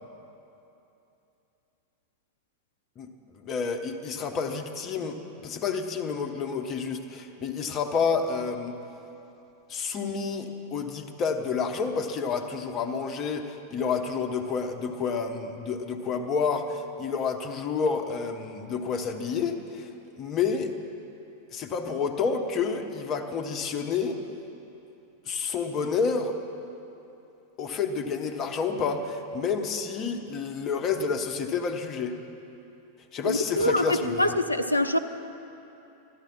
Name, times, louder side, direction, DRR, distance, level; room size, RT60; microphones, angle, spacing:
voice 1, 3.4-8.8 9.7-19.9 20.2-20.7 21.5-24.2 25.3-26.3 27.6-32.2 33.1-34.4, left 5 dB, 30° left, 5 dB, 1.0 m, -29 dB
voice 2, 33.2-35.0, left 1 dB, 85° left, 9 dB, 0.5 m, -25 dB
13.5 x 12.0 x 6.1 m, 2.9 s
figure-of-eight pair, 90°, 0 cm